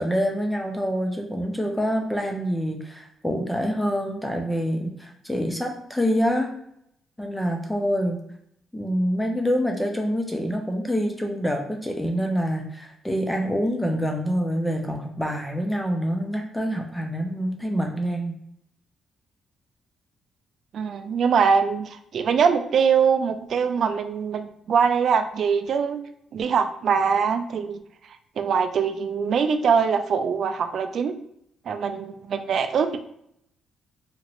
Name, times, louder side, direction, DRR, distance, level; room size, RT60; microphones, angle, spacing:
voice 1, 0.0-6.5 7.2-8.2 8.7-18.3, equal, 5° left, 2 dB, 0.4 m, -26 dB
voice 2, 20.7-26.0 26.3-27.8 28.4-31.1 31.7-33.0, right 6 dB, 60° right, 8 dB, 0.3 m, -23 dB
2.8 x 2.5 x 3.0 m, 0.74 s
cardioid pair, 90°, 0 cm